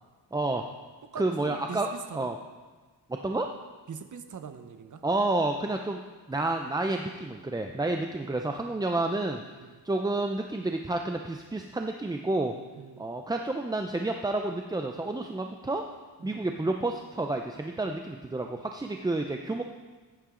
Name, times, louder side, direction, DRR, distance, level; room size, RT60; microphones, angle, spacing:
voice 1, 0.3-0.6 1.2-1.9 2.1-2.4 3.2-3.5 5.0-6.0 6.3-9.4 9.8-12.5 13.0-15.8 16.2-19.6, right 2 dB, 10° right, 4 dB, 0.3 m, -30 dB
voice 2, 1.1-2.3 3.9-5.0 9.6-9.8 12.8-13.2 16.2-16.4, right 6 dB, 45° right, 8 dB, 0.8 m, -42 dB
15.0 x 8.6 x 3.7 m, 1.3 s
wide cardioid pair, 155°, 42 cm